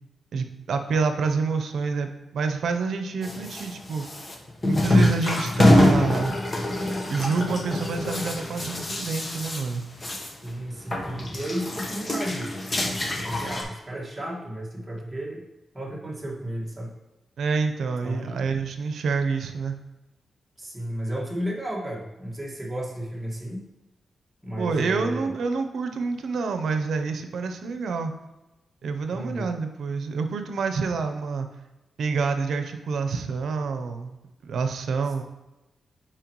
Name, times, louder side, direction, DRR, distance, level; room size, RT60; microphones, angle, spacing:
voice 1, 0.3-4.0 4.6-6.4 7.1-9.8 17.4-19.7 24.5-28.1 28.8-31.5 32.0-34.2 34.4-35.2, right 4 dB, 80° right, 7 dB, 0.6 m, -27 dB
sound 1, 3.2-10.5 10.8-13.6, left 1 dB, 30° left, 1.1 m, -25 dB
voice 2, 10.4-15.4 15.7-16.9 18.0-18.4 20.6-23.6 24.4-25.3 29.1-29.5, right 1 dB, 15° right, -4 dB, 1.7 m, -33 dB
9.0 x 4.5 x 3.0 m, 1.0 s
cardioid pair, 95°, 0 cm